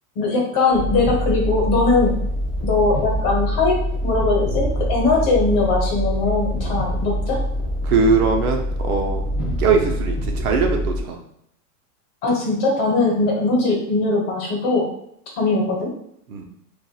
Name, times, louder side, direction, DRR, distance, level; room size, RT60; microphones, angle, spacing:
voice 1, 0.1-2.1 2.6-3.7 4.0-7.4 12.2-14.9 15.4-15.9, left 3 dB, 35° left, -1 dB, 1.1 m, -20 dB
sound 1, 0.7-11.0, equal, 15° right, 0.4 m, -24 dB
voice 2, 7.8-9.2 9.6-11.2 16.3-16.5, right 4 dB, 65° right, 2 dB, 1.0 m, -21 dB
7.0 x 2.6 x 2.4 m, 0.72 s
supercardioid pair, 170°, 47 cm